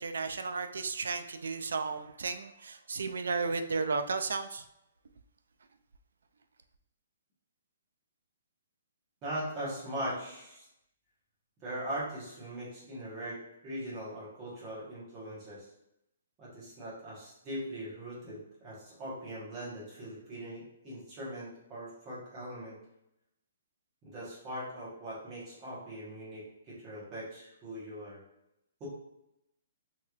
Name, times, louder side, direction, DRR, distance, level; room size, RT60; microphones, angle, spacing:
voice 1, 0.0-4.7, right 4 dB, 85° right, 8 dB, 0.3 m, -34 dB
voice 2, 9.2-10.6 11.6-15.7 16.4-22.8 24.0-28.2 28.8-28.9, right 1 dB, 15° right, -9 dB, 1.1 m, -40 dB
3.2 x 2.9 x 2.3 m, 0.84 s
hypercardioid pair, 180°, 0 cm